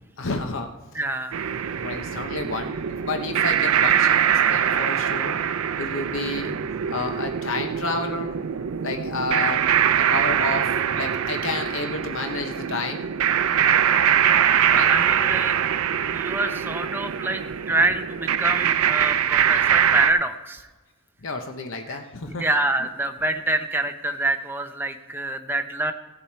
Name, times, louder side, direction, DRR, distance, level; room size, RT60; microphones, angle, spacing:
voice 1, 0.2-0.7 1.8-5.4 5.8-6.6 6.9-9.7 9.9-13.1 14.6-14.9 21.2-22.5, left 3 dB, 60° left, 5 dB, 0.8 m, -30 dB
voice 2, 0.9-1.4 14.9-15.6 16.1-20.7 21.9-25.9, right 2 dB, 10° right, 6 dB, 0.6 m, -26 dB
sound 1, 1.3-20.1, right 9 dB, 75° right, 0.5 m, -23 dB
17.0 x 7.2 x 4.5 m, 1.2 s
head